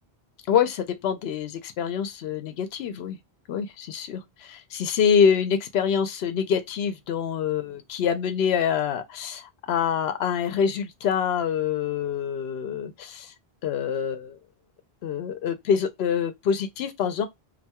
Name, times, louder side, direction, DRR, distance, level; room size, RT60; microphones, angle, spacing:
voice 1, 0.5-3.2 3.5-13.3 13.6-14.4 15.0-17.3, left 7 dB, 80° left, 0.8 m, -26 dB
2.6 x 2.3 x 2.8 m
omnidirectional pair, 1.0 m